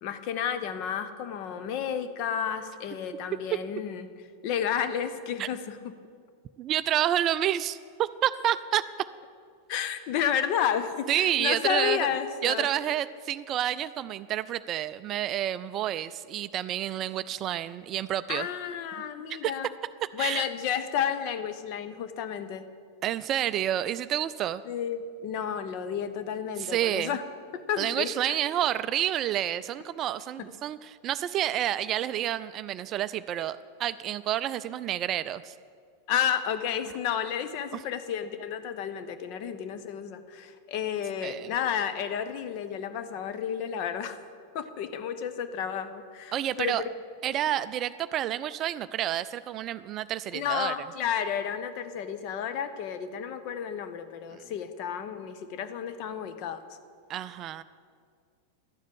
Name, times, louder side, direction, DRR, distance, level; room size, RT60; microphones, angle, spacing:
voice 1, 0.0-4.1 4.4-5.9 9.7-12.7 18.3-19.7 20.1-22.7 24.6-27.2 27.5-28.1 36.1-44.2 44.5-46.7 50.3-56.6, left 8 dB, 45° left, 10 dB, 0.8 m, -31 dB
voice 2, 6.6-8.8 11.1-12.1 12.4-18.5 19.3-19.5 20.2-20.5 23.0-24.6 26.6-27.2 27.8-35.5 37.7-37.8 41.2-41.5 46.3-46.8 47.2-50.7 54.3-54.5 57.1-57.6, right 11 dB, 35° right, 14 dB, 0.3 m, -29 dB
12.0 x 7.3 x 8.6 m, 2.1 s
figure-of-eight pair, 90°, 0 cm